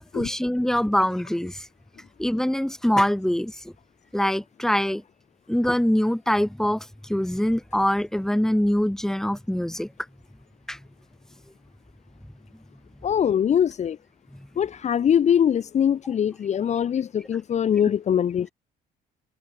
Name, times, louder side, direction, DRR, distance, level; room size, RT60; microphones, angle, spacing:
voice 1, 0.0-1.6 2.2-3.5 4.1-5.0 5.5-9.9 10.7-10.8, equal, 5° left, 3.8 m, -24 dB
voice 2, 13.0-14.0 14.6-18.5, left 8 dB, 45° left, 1.2 m, -22 dB
cardioid pair, 110°, 17 cm